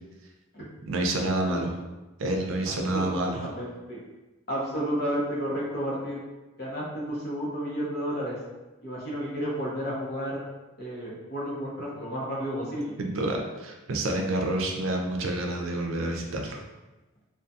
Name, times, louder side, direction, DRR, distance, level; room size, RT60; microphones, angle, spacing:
voice 1, 0.9-1.7 2.2-3.4 13.0-16.6, right 1 dB, 85° right, 2 dB, 0.4 m, -28 dB
voice 2, 3.4-4.0 4.5-6.2 6.6-8.4 8.8-10.4 10.8-12.9, equal, 55° left, -5 dB, 0.8 m, -31 dB
2.7 x 2.3 x 2.3 m, 1.1 s
head